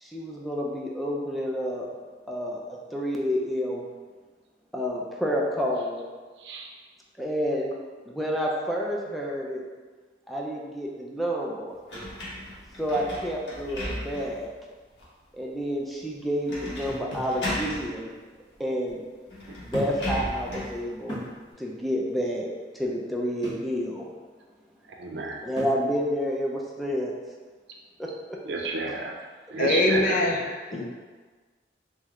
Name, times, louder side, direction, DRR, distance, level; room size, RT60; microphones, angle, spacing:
voice 1, 0.0-1.9 2.3-3.8 4.7-6.0 7.2-7.7 8.1-9.6 10.3-11.7 12.8-14.5 15.4-18.1 18.6-19.0 19.6-21.2 21.6-22.5 22.7-24.1 25.4-27.1 28.0-28.4, equal, ahead, 0.5 m, -29 dB
voice 2, 6.4-6.7 19.5-19.6 24.9-25.4 28.5-29.1 29.5-30.2, right 3 dB, 70° right, 0.6 m, -31 dB
sound 1, 11.9-14.5 15.0-15.1 16.5-17.0 17.2-17.9 18.9-19.0 19.3-20.8, left 1 dB, 80° left, 1.0 m, -35 dB
sound 2, 16.8-17.4 18.5-18.6 19.7-20.1 20.5-20.6 21.1-21.4 23.4-23.7 25.6-25.9, equal, 30° left, 1.2 m, -35 dB
voice 3, 29.6-30.8, left 2 dB, 50° left, 0.5 m, -24 dB
3.2 x 3.2 x 3.6 m
head